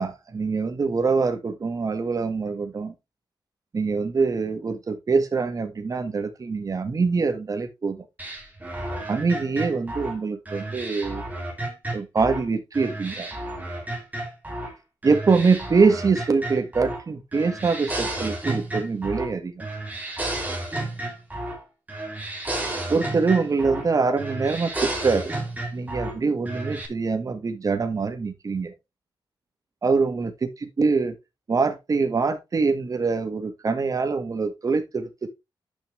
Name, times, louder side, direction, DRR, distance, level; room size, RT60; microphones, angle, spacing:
voice 1, 0.0-2.9 3.7-8.0 9.1-11.2 11.9-13.3 15.0-19.7 22.9-25.3 25.7-28.7 29.8-31.1 31.5-35.3, right 4 dB, 40° right, 1.8 m, -24 dB
sound 1, 8.2-12.5 12.7-14.7 15.0-17.0 17.3-19.3 19.6-21.6 21.9-23.9 24.2-26.1 26.4-26.9, right 1 dB, 20° right, 3.0 m, -32 dB
10.5 x 6.2 x 3.3 m
wide cardioid pair, 120°, 9 cm